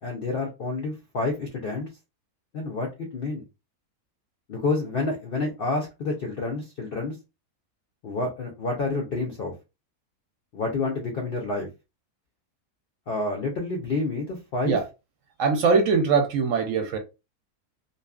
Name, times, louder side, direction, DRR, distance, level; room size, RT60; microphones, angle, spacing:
voice 1, 0.0-1.9 2.5-3.4 4.5-7.2 8.0-9.5 10.5-11.7 13.1-14.8, left 3 dB, 70° left, 0.5 m, -29 dB
voice 2, 15.4-17.0, right 5 dB, 70° right, 0.8 m, -22 dB
2.7 x 2.4 x 2.3 m
omnidirectional pair, 1.6 m